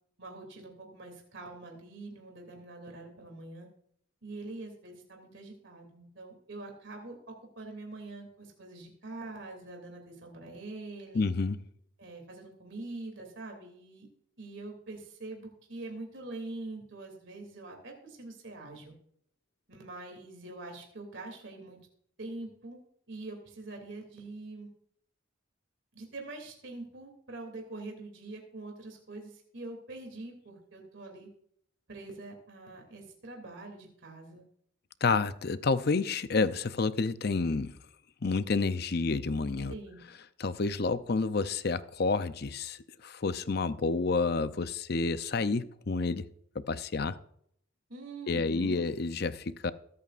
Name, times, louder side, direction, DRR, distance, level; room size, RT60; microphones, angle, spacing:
voice 1, 0.2-3.7 4.2-11.3 12.0-14.1 14.4-18.9 19.7-21.8 22.2-22.8 23.1-24.7 25.9-31.3 31.9-34.4 39.7-40.0 47.9-48.9, right 2 dB, 65° right, 2.9 m, -44 dB
voice 2, 11.1-11.6 35.0-37.8 38.2-39.7 40.4-46.3 46.7-47.2 48.3-49.7, left 4 dB, 50° left, 0.6 m, -29 dB
22.5 x 8.6 x 2.5 m
head